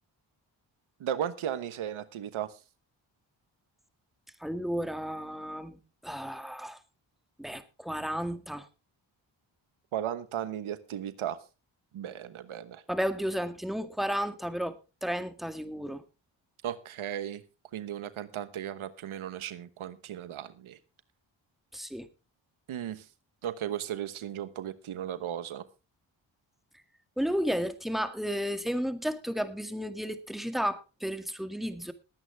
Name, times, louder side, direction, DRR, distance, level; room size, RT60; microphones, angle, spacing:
voice 1, 1.0-2.5 9.9-11.4 11.9-12.8 16.6-17.4 17.7-20.8 22.7-23.0 23.4-25.6, right 10 dB, 85° right, 14 dB, 1.2 m, -35 dB
voice 2, 4.4-6.8 7.4-8.7 12.9-16.0 21.7-22.1 27.2-31.9, equal, ahead, 10 dB, 2.0 m, -33 dB
20.5 x 9.1 x 3.4 m, 0.30 s
cardioid pair, 55°, 47 cm